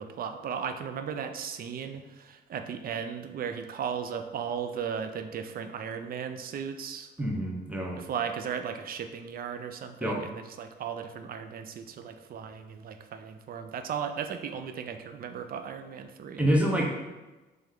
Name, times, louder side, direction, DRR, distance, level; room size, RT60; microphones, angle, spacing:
voice 1, 0.0-7.1 8.0-16.4, right 7 dB, 50° right, 8 dB, 0.4 m, -36 dB
voice 2, 7.2-8.0 10.0-10.2 16.4-17.0, equal, 5° right, 0 dB, 0.8 m, -27 dB
3.2 x 3.0 x 3.7 m, 1.1 s
cardioid pair, 90°, 20 cm